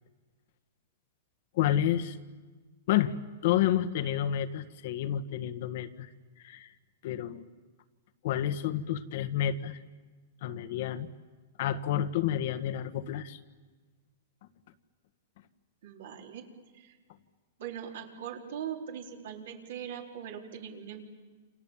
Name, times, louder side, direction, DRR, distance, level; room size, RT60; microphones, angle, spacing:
voice 1, 1.5-2.2 2.9-3.1 3.4-6.1 6.4-6.7 7.0-7.4 8.2-9.8 10.4-11.1 11.6-13.4, left 11 dB, 60° left, 12 dB, 1.6 m, -29 dB
voice 2, 15.8-16.5 16.7-17.0 17.6-21.0, right 8 dB, 70° right, 1 dB, 4.4 m, -41 dB
29.0 x 27.0 x 7.4 m, 1.3 s
hypercardioid pair, 135°, 0 cm